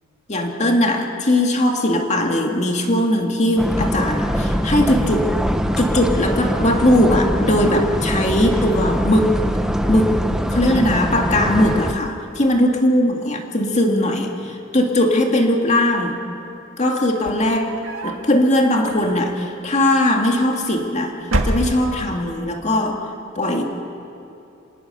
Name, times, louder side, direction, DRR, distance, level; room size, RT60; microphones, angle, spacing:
voice 1, 0.3-5.4 5.8-9.4 9.9-16.2 16.8-17.8 18.0-21.1 21.4-23.1 23.4-23.6, left 1 dB, 35° left, 3 dB, 2.2 m, -19 dB
sound 1, 3.6-11.9, equal, 5° right, 0.9 m, -22 dB
sound 2, 17.1-18.3 18.8-19.4 20.4-20.9 21.2-22.2, right 1 dB, 75° right, 1.9 m, -26 dB
27.0 x 18.5 x 6.8 m, 2.7 s
head